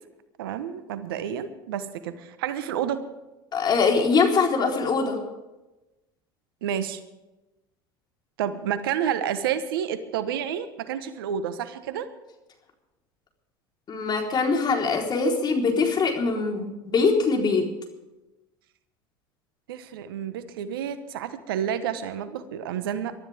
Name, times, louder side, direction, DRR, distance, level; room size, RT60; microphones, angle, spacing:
voice 1, 0.4-3.0 6.6-7.0 8.4-12.1 19.7-23.1, right 9 dB, 80° right, 11 dB, 1.2 m, -30 dB
voice 2, 3.5-5.2 13.9-17.7, left 4 dB, 35° left, 1 dB, 4.1 m, -23 dB
23.0 x 13.0 x 3.6 m, 1.0 s
hypercardioid pair, 85°, 12 cm